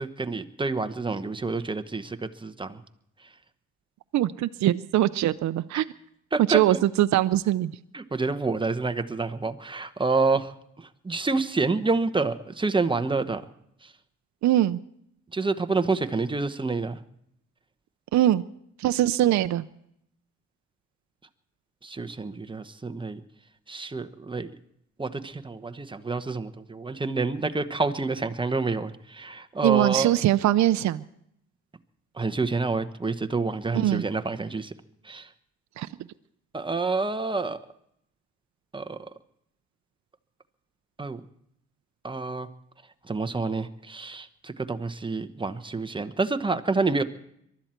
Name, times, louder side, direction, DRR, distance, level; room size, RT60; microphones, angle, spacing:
voice 1, 0.0-2.2 2.4-2.8 6.3-6.6 7.9-10.5 11.0-13.4 15.3-17.0 21.8-23.2 23.7-24.5 25.0-30.1 32.2-34.7 35.1-35.3 36.5-37.6 38.7-39.0 41.0-41.2 42.0-42.5 43.1-47.0, right 3 dB, 15° right, 10 dB, 1.1 m, -28 dB
voice 2, 4.1-5.9 6.4-7.7 14.4-14.8 18.1-18.4 18.8-19.6 29.6-31.0 33.7-34.0 35.8-35.9, right 13 dB, 65° right, 11 dB, 0.6 m, -22 dB
23.0 x 13.0 x 4.4 m, 0.74 s
cardioid pair, 90°, 30 cm